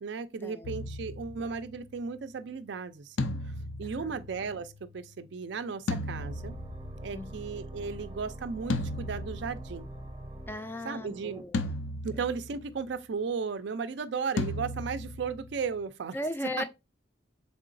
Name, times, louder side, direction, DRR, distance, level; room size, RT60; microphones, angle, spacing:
voice 1, 0.0-3.0 3.8-4.7 4.9-5.8 6.1-6.5 7.0-9.9 10.8-11.4 12.0-16.1 16.6-16.7, right 5 dB, 65° right, 0.4 m, -35 dB
sound 1, 0.6-1.9 3.2-4.9 5.9-7.2 8.7-10.1 11.5-12.7 14.4-15.8, left 2 dB, 85° left, 0.5 m, -35 dB
sound 2, 6.1-11.4, right 1 dB, 25° right, 0.7 m, -44 dB
voice 2, 10.5-11.7 16.1-16.6, left 1 dB, 10° left, 0.3 m, -36 dB
3.8 x 3.5 x 2.5 m
head